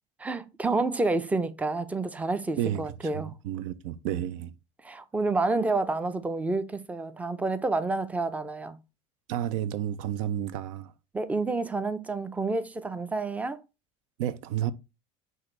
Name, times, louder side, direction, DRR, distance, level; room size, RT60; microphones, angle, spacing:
voice 1, 0.2-3.3 4.8-8.8 11.1-13.6, right 3 dB, 10° right, 0.5 m, -29 dB
voice 2, 2.6-4.5 9.3-10.9 14.2-14.7, right 11 dB, 80° right, 0.4 m, -31 dB
5.6 x 2.6 x 3.1 m
supercardioid pair, 95°, 16 cm